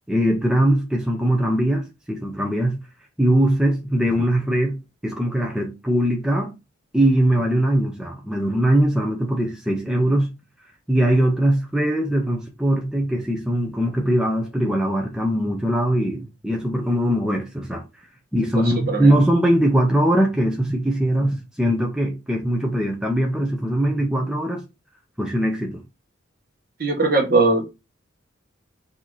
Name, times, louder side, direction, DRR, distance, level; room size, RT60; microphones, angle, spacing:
voice 1, 0.1-2.8 3.2-4.7 5.0-6.5 6.9-10.3 10.9-17.8 18.3-24.6 25.2-25.8, right 1 dB, 5° right, 0.6 m, -21 dB
voice 2, 26.8-27.7, right 3 dB, 45° right, 1.1 m, -19 dB
4.6 x 2.8 x 3.9 m
head